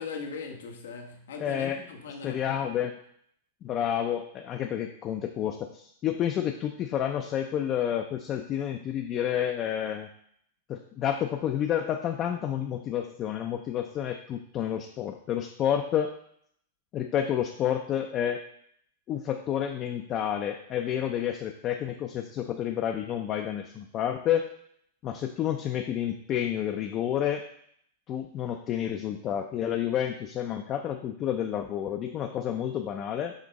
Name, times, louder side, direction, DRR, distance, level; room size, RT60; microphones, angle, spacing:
voice 1, 0.0-2.7, left 5 dB, 85° left, 3 dB, 1.0 m, -40 dB
voice 2, 1.4-1.8 2.2-2.9 3.6-10.1 10.7-16.1 16.9-18.4 19.1-24.5 25.0-27.4 28.1-33.3, left 10 dB, 30° left, 4 dB, 0.4 m, -30 dB
6.0 x 3.1 x 5.1 m, 0.67 s
supercardioid pair, 145°, 0 cm